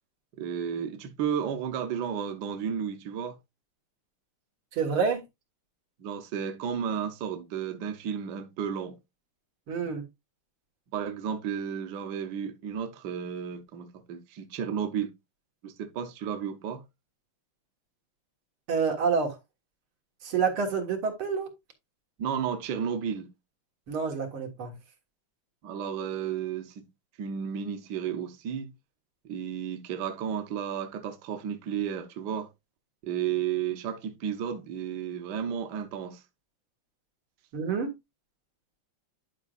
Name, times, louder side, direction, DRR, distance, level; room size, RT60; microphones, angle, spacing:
voice 1, 0.4-3.4 6.0-9.0 10.9-15.1 15.6-16.8 22.2-23.3 25.6-26.9 27.2-28.7 29.2-32.5 33.0-36.2, right 8 dB, 60° right, 1.3 m, -33 dB
voice 2, 4.7-5.2 9.7-10.0 18.7-19.4 20.2-21.5 23.9-24.7 37.5-37.9, right 5 dB, 85° right, 2.4 m, -28 dB
11.0 x 5.0 x 2.4 m
omnidirectional pair, 2.3 m